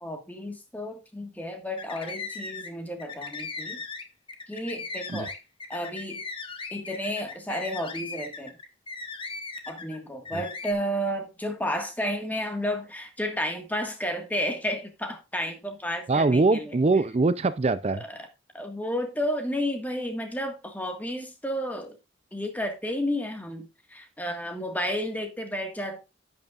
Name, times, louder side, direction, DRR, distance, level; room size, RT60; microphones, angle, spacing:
voice 1, 0.0-3.8 4.5-5.3 5.7-6.2 6.7-8.6 9.7-16.8 17.9-18.3 18.5-22.0 22.3-26.0, equal, 10° left, 1.6 m, -32 dB
sound 1, 1.7-2.7 3.0-10.0 10.3-10.7, left 4 dB, 25° left, 1.2 m, -38 dB
voice 2, 16.1-18.0, right 3 dB, 35° right, 0.4 m, -23 dB
10.5 x 9.4 x 2.4 m
head